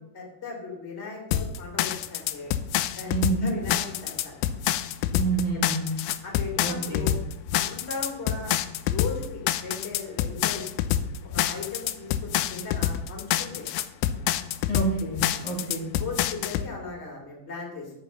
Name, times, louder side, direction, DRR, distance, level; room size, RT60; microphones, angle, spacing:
voice 1, 0.1-2.5 3.0-3.1 3.4-4.3 5.5-5.7 6.2-7.2 7.5-8.5 8.9-10.6 11.2-13.7 14.4-14.5 15.3-15.4 16.0-17.9, left 4 dB, 20° left, -1 dB, 2.6 m, -37 dB
sound 1, 1.3-16.7, left 11 dB, 80° left, 1.9 m, -27 dB
voice 2, 3.1-3.5 5.1-6.0 6.6-7.1 14.7-16.0, right 3 dB, 35° left, -5 dB, 2.4 m, -28 dB
12.0 x 5.3 x 6.8 m, 0.88 s
omnidirectional pair, 4.1 m